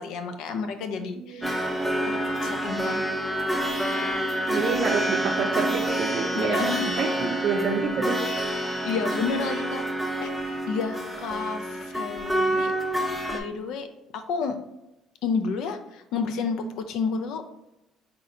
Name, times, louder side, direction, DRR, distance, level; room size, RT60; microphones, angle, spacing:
voice 1, 0.0-1.5 2.1-3.0 6.3-7.1 8.7-9.8 10.2-10.3 10.7-12.7 13.3-13.9 14.1-14.6 15.2-17.4, left 5 dB, 75° left, 7 dB, 0.5 m, -30 dB
voice 2, 1.0-1.5 4.5-8.3, right 5 dB, 60° right, 1 dB, 0.5 m, -28 dB
sound 1, 1.4-13.4, right 1 dB, 5° left, 0.7 m, -28 dB
4.1 x 3.7 x 2.6 m, 0.89 s
supercardioid pair, 85°, 0 cm